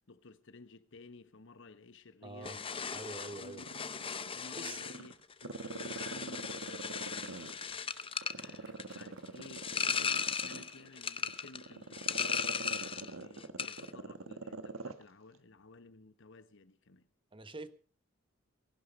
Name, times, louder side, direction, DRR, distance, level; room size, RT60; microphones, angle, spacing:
voice 1, 0.1-3.7 4.3-5.1 5.4-7.8 8.3-17.1, left 3 dB, 65° left, 1.1 m, -54 dB
voice 2, 2.2-2.6 2.9-3.7 4.5-4.8 17.3-17.7, right 2 dB, 25° right, 1.2 m, -45 dB
sound 1, 2.4-13.1 13.4-13.9, left 6 dB, 25° left, 0.7 m, -37 dB
Growling, 2.6-4.4 4.8-7.8 8.2-15.0 15.3-15.4, right 3 dB, 85° right, 1.4 m, -44 dB
Fireworks, 6.9-12.6, right 4 dB, 70° right, 2.3 m, -63 dB
19.0 x 11.5 x 5.3 m
head